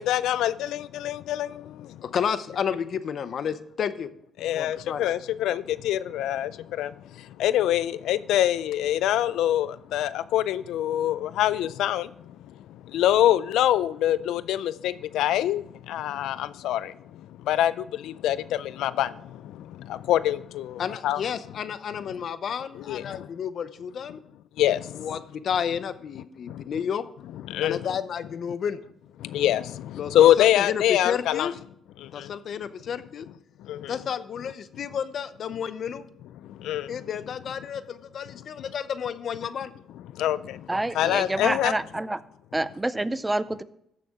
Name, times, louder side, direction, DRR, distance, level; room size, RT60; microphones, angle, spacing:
voice 1, 0.0-2.0 4.4-12.1 12.9-21.2 22.8-23.3 24.6-25.1 26.5-26.7 27.5-27.9 29.2-31.5 32.0-32.3 33.6-33.9 36.5-37.0 40.1-40.7 41.0-41.7, left 12 dB, 85° left, 0.3 m, -25 dB
voice 2, 2.0-4.1 4.5-5.1 20.8-24.2 25.0-27.0 27.6-28.8 29.9-30.1 30.4-31.6 32.1-33.3 33.9-36.0 36.9-39.7, left 7 dB, 60° left, 0.7 m, -31 dB
voice 3, 40.7-42.2 42.5-43.6, right 2 dB, 15° right, 0.5 m, -28 dB
14.5 x 6.8 x 3.6 m
cardioid pair, 90°, 0 cm